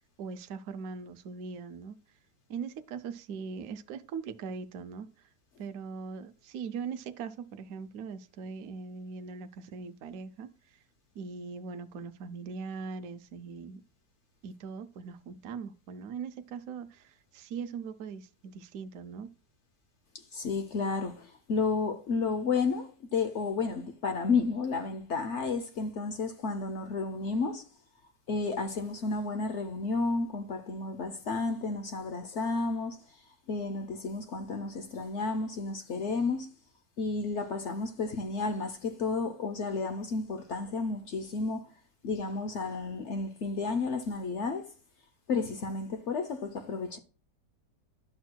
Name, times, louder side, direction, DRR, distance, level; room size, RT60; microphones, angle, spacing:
voice 1, 0.2-2.0 2.5-5.3 5.6-10.5 11.1-13.8 14.4-19.3, right 5 dB, 70° right, 0.9 m, -40 dB
voice 2, 20.3-27.6 28.3-33.0 33.5-36.5 37.0-41.7 42.0-44.7 45.3-47.0, left 4 dB, 70° left, 0.7 m, -32 dB
11.0 x 6.1 x 2.2 m
omnidirectional pair, 1.9 m